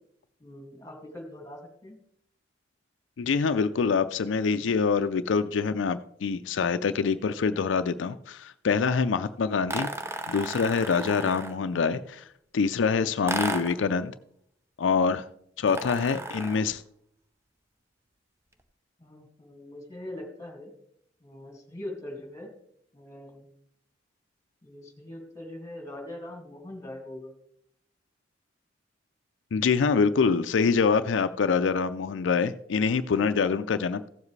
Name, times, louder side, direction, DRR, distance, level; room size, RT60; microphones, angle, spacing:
voice 1, 0.4-2.0 11.7-12.0 19.0-20.7 21.2-22.5 22.9-23.5 24.6-27.3, left 1 dB, 20° left, 2 dB, 2.2 m, -42 dB
voice 2, 3.2-9.9 10.3-12.3 12.5-14.1 14.8-15.2 15.6-16.8 29.5-34.1, left 5 dB, 90° left, 10 dB, 0.4 m, -25 dB
sound 1, 9.7-11.7 13.3-13.9 15.7-16.7, right 2 dB, 15° right, 0.6 m, -34 dB
15.5 x 7.3 x 3.2 m, 0.71 s
head